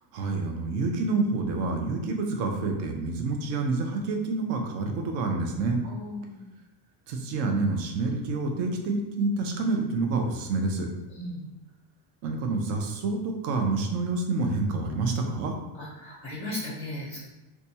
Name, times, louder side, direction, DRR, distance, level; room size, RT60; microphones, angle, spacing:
voice 1, 0.1-5.8 7.1-10.9 12.2-15.5, right 3 dB, 35° right, 3 dB, 0.4 m, -28 dB
voice 2, 5.8-6.4 11.1-11.5 15.7-17.2, left 1 dB, 10° left, -7 dB, 0.7 m, -36 dB
3.9 x 2.3 x 2.7 m, 1.1 s
supercardioid pair, 145°, 50 cm